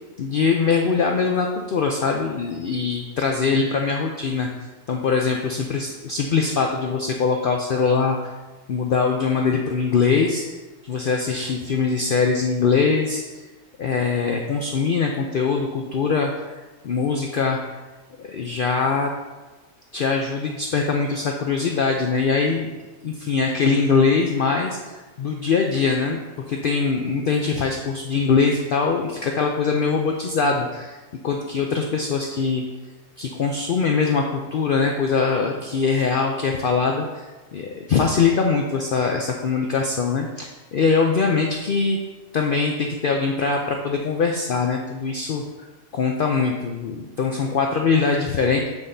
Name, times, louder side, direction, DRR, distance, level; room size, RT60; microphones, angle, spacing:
voice 1, 0.2-4.5 4.9-8.3 8.7-10.6 10.8-13.4 13.8-17.8 18.2-19.1 19.9-22.7 23.0-31.0 31.2-32.6 33.2-42.0 42.3-45.7 45.9-48.7, left 5 dB, 55° left, 2 dB, 0.6 m, -22 dB
7.7 x 7.1 x 2.7 m, 1.2 s
omnidirectional pair, 1.4 m